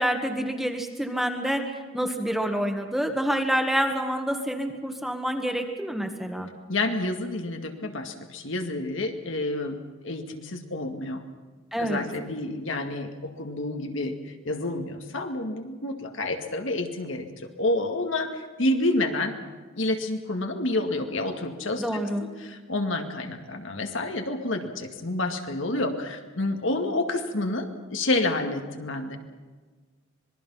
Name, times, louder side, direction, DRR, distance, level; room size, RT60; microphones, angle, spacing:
voice 1, 0.0-1.6 1.9-6.5 11.7-12.0 21.8-22.3, equal, ahead, 4 dB, 1.7 m, -27 dB
voice 2, 6.7-9.8 10.0-11.2 11.8-14.1 14.4-19.3 19.8-21.8 22.2-29.2, left 2 dB, 70° left, 4 dB, 2.2 m, -29 dB
26.0 x 21.0 x 5.8 m, 1.4 s
head